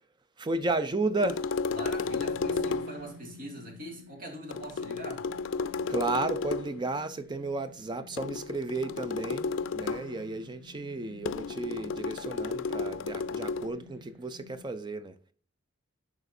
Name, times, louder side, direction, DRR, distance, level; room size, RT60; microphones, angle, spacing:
voice 1, 0.4-1.4 5.9-15.2, right 2 dB, 25° right, 0.4 m, -33 dB
sound 1, 1.2-3.1 4.5-6.8 8.2-10.2 11.2-13.7, left 4 dB, 85° left, 0.4 m, -33 dB
voice 2, 1.7-5.2, right 1 dB, 50° right, 2.2 m, -42 dB
sound 2, 1.9-14.7, left 1 dB, 85° right, 1.1 m, -52 dB
11.0 x 4.9 x 2.6 m
head